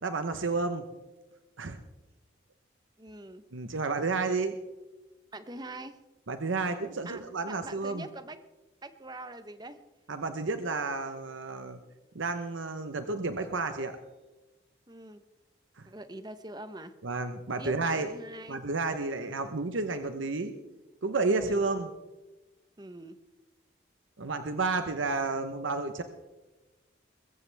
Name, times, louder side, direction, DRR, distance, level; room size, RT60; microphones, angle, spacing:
voice 1, 0.0-0.8 1.6-1.8 3.5-4.6 6.3-8.1 10.1-11.8 12.1-14.0 15.8-15.9 17.0-18.1 18.5-20.6 21.0-21.9 24.2-26.0, right 3 dB, 85° right, 8 dB, 1.0 m, -31 dB
voice 2, 3.0-3.4 5.3-6.0 7.0-7.2 7.5-8.4 8.8-9.8 14.9-15.2 15.8-16.9 17.6-18.6 21.4-21.7 22.8-23.2, right 2 dB, 20° right, 10 dB, 0.9 m, -43 dB
22.0 x 14.5 x 3.4 m, 1.1 s
head